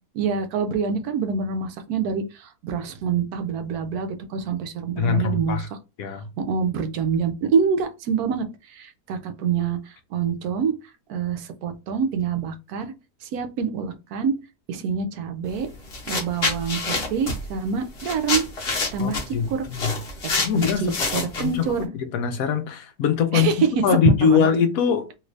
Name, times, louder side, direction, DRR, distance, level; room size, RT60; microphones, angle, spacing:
voice 1, 0.1-5.7 6.4-9.8 10.1-10.7 11.1-12.8 13.2-14.3 14.7-15.7 16.1-18.4 18.9-19.7 20.2-21.9 23.3-23.7 24.0-24.5, right 6 dB, 75° right, 1.0 m, -26 dB
voice 2, 5.0-5.6 6.0-6.2 19.0-19.9 20.4-21.7 22.0-23.5 23.8-25.1, left 7 dB, 70° left, 1.0 m, -22 dB
sound 1, 15.5-15.6 15.9-21.8, left 3 dB, 45° left, 1.1 m, -27 dB
3.0 x 2.5 x 3.2 m
omnidirectional pair, 1.6 m